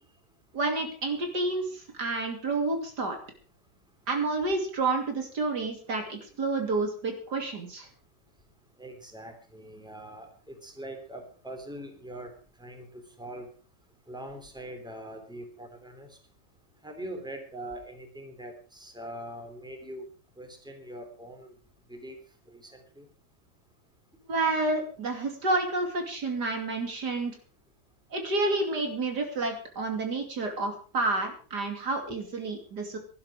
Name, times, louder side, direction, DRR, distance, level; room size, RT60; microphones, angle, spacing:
voice 1, 0.5-3.2 4.1-7.9 24.3-27.3 28.1-33.0, right 3 dB, 70° right, 4 dB, 3.3 m, -29 dB
voice 2, 8.8-12.3 12.6-13.5 14.1-16.1 16.8-20.1 20.4-21.5 21.9-22.2 22.5-23.1, right 1 dB, ahead, 4 dB, 3.2 m, -42 dB
17.5 x 12.0 x 4.9 m, 0.39 s
omnidirectional pair, 1.8 m